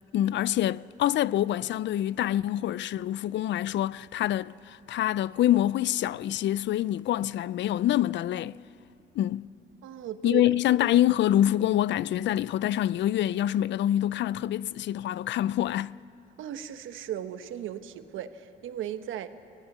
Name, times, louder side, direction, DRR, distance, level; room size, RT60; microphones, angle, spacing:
voice 1, 0.1-8.6 9.1-9.5 10.2-16.0, left 12 dB, 65° left, 0.4 m, -26 dB
voice 2, 9.8-10.4 16.4-19.3, right 11 dB, 80° right, 1.1 m, -36 dB
25.0 x 16.5 x 7.2 m
cardioid pair, 90°, 20 cm